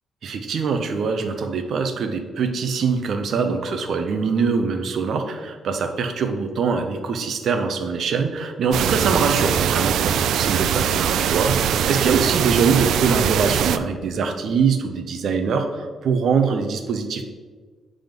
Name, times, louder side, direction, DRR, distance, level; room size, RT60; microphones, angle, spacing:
voice 1, 0.2-17.2, right 5 dB, 60° right, 6 dB, 0.8 m, -23 dB
sound 1, 8.7-13.8, right 9 dB, 90° right, 0.3 m, -21 dB
7.5 x 3.8 x 5.2 m, 1.4 s
cardioid pair, 155°, 0 cm